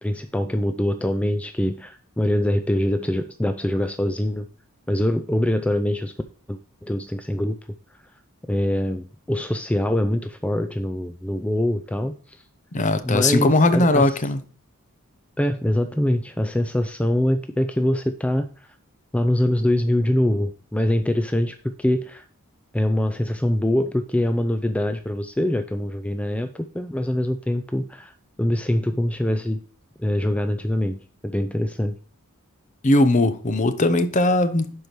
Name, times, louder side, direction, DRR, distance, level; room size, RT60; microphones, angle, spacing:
voice 1, 0.0-4.5 4.9-6.1 6.5-7.6 8.5-12.4 13.0-14.2 15.4-18.5 19.1-22.2 22.7-28.1 28.4-29.6 30.0-32.0, left 1 dB, 5° left, 0.4 m, -24 dB
voice 2, 12.7-14.4 32.8-34.7, left 2 dB, 35° left, 0.7 m, -19 dB
11.5 x 4.7 x 3.0 m
head